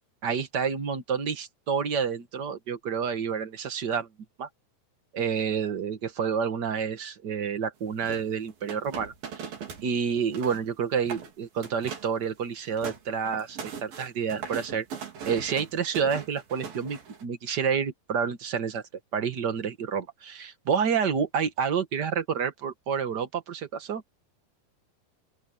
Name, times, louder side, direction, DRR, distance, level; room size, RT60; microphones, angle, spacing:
voice 1, 0.2-4.1 4.4-4.5 5.1-9.5 9.8-14.8 15.2-18.8 19.1-24.0, right 6 dB, 60° right, 1.0 m, -29 dB
sound 1, 8.0-9.9 10.2-10.7 11.0-11.3 11.6-12.2 12.5-17.2, right 6 dB, 85° right, 5.3 m, -39 dB
open air
omnidirectional pair, 4.1 m